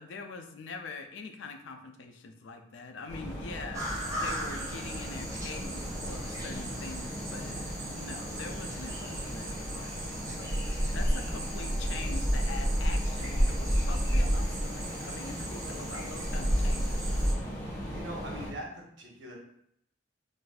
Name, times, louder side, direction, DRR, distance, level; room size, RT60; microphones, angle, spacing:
voice 1, 0.0-10.0 10.4-17.1, left 4 dB, 75° left, 6 dB, 0.4 m, -44 dB
sound 1, 3.1-18.5, equal, 15° left, 1.0 m, -39 dB
sound 2, 3.7-17.3, equal, 15° right, 0.5 m, -32 dB
voice 2, 17.8-19.3, right 1 dB, 70° right, -1 dB, 0.8 m, -42 dB
4.0 x 2.5 x 2.3 m, 0.72 s
head